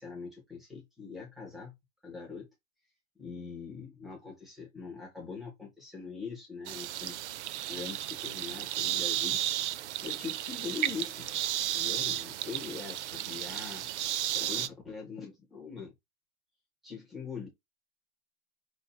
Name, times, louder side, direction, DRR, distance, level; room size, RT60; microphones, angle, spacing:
voice 1, 0.0-1.7 2.0-2.5 3.2-7.2 7.6-9.4 10.0-11.3 11.7-13.9 14.3-15.9 16.8-17.5, left 5 dB, ahead, 0.3 m, -42 dB
sound 1, 6.7-14.7, right 13 dB, 65° right, 0.6 m, -33 dB
5.1 x 2.3 x 3.7 m
supercardioid pair, 180°, 39 cm